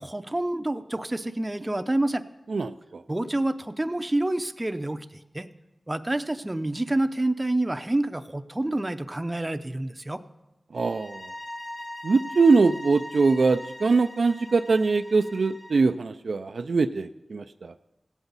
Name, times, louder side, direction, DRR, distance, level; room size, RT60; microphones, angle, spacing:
voice 1, 0.0-2.2 3.1-5.1 5.3-5.5 5.9-10.2, right 1 dB, 20° right, 10 dB, 0.5 m, -28 dB
voice 2, 2.5-3.0 10.7-11.3 12.0-17.7, right 4 dB, 75° right, 9 dB, 0.3 m, -23 dB
sound 1, 10.7-15.9, left 1 dB, 40° left, 2.6 m, -41 dB
16.5 x 8.1 x 4.0 m, 1.0 s
wide cardioid pair, 65°, 0 cm